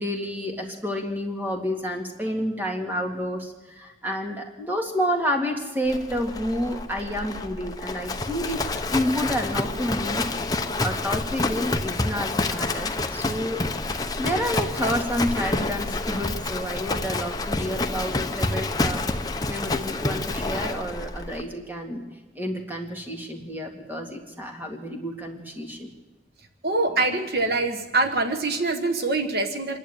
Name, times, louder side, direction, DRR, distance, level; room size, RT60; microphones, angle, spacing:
voice 1, 0.0-8.6 8.9-13.6 14.2-19.1 19.5-22.0 22.4-25.9, equal, 10° right, 2 dB, 2.2 m, -29 dB
Livestock farm animals working animals, 5.9-21.4, left 2 dB, 20° left, 0.9 m, -28 dB
voice 2, 26.6-29.8, right 3 dB, 60° right, 6 dB, 1.5 m, -24 dB
26.0 x 11.5 x 8.8 m, 1.1 s
head